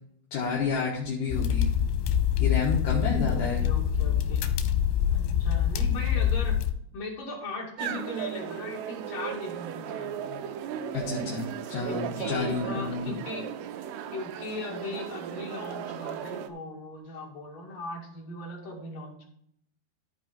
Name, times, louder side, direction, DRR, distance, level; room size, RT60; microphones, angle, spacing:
voice 1, 0.3-1.7 2.4-3.6 10.9-13.1, left 4 dB, 60° left, -4 dB, 2.4 m, -30 dB
sound 1, 1.3-6.7, left 9 dB, 90° left, 3.0 m, -25 dB
voice 2, 3.2-4.4 5.1-6.6 6.9-10.4 11.9-13.5 14.1-19.3, left 2 dB, 45° left, -2 dB, 3.2 m, -38 dB
sound 2, 7.8-16.5, right 9 dB, 80° right, 2.7 m, -36 dB
14.0 x 4.9 x 4.4 m, 0.68 s
omnidirectional pair, 5.0 m